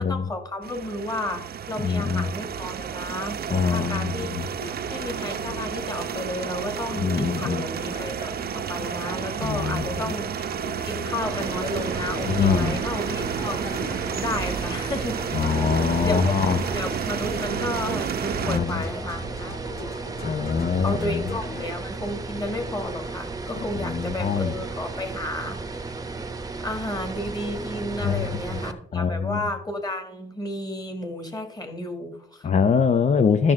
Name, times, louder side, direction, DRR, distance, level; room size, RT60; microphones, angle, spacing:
voice 1, 0.0-4.5 4.9-10.5 10.8-13.6 14.2-15.5 16.0-16.4 16.7-19.6 20.8-25.9 26.6-32.5, left 1 dB, 20° left, 5 dB, 2.2 m, -32 dB
sound 1, 0.6-18.6, right 8 dB, 50° right, 0.8 m, -31 dB
voice 2, 1.8-2.3 3.5-4.1 7.0-7.6 9.4-9.8 12.3-12.8 15.3-16.6 18.4-18.8 20.2-21.2 23.9-24.5 28.0-28.3 28.5-28.6 28.9-29.4 32.4-33.5, left 6 dB, 35° left, 11 dB, 0.6 m, -23 dB
sound 2, 4.6-21.8, left 3 dB, 50° left, 1.8 m, -41 dB
sound 3, 11.2-28.7, right 3 dB, 20° right, 1.0 m, -34 dB
13.0 x 6.5 x 3.6 m, 0.67 s
cardioid pair, 90°, 20 cm